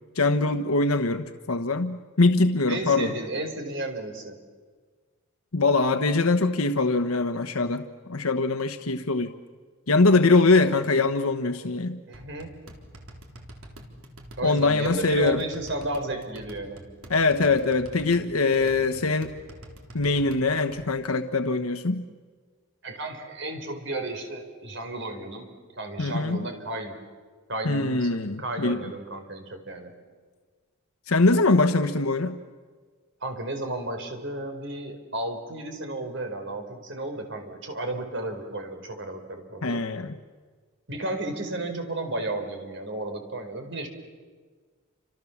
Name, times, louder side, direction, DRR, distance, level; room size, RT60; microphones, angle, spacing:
voice 1, 0.1-3.1 5.5-7.8 8.1-9.3 9.9-12.0 14.4-15.4 17.1-19.3 19.9-22.0 26.0-26.4 27.6-28.8 31.1-32.4 39.6-40.1, left 3 dB, 90° left, 8 dB, 1.2 m, -23 dB
voice 2, 2.7-4.4 10.5-10.8 12.1-12.5 14.4-16.8 22.8-26.9 27.5-29.9 33.2-39.8 40.9-43.9, right 2 dB, 55° right, 5 dB, 4.7 m, -33 dB
sound 1, 12.1-20.9, right 1 dB, 85° right, 4.0 m, -46 dB
30.0 x 26.5 x 7.3 m, 1.5 s
head